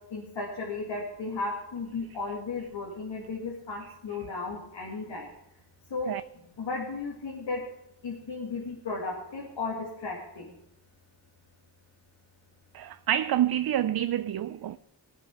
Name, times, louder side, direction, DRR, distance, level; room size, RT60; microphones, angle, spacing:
voice 1, 0.1-5.3 5.9-6.1 6.6-7.6 8.0-10.5, left 3 dB, 80° left, 2.4 m, -35 dB
voice 2, 12.7-14.8, right 11 dB, 55° right, 0.5 m, -27 dB
19.0 x 9.1 x 4.9 m
cardioid pair, 55°, 44 cm